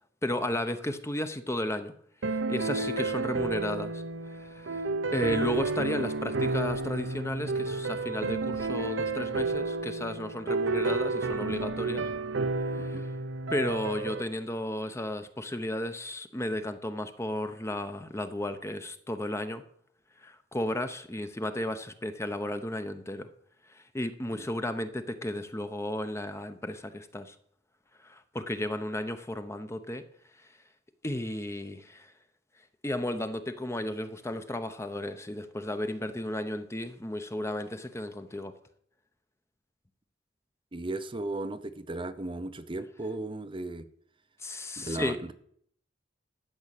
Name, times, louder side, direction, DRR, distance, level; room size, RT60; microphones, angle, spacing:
voice 1, 0.2-1.9 2.3-4.8 5.1-12.1 12.7-13.1 13.5-19.6 20.2-23.3 23.7-27.3 28.0-30.0 31.0-32.1 32.8-38.5 44.4-45.2, left 1 dB, 15° left, 9 dB, 0.8 m, -34 dB
sound 1, 2.2-14.2, right 3 dB, 70° right, 0.7 m, -31 dB
voice 2, 40.7-43.9 44.8-45.3, right 2 dB, 25° right, 10 dB, 0.7 m, -36 dB
12.5 x 6.2 x 8.3 m, 0.65 s
head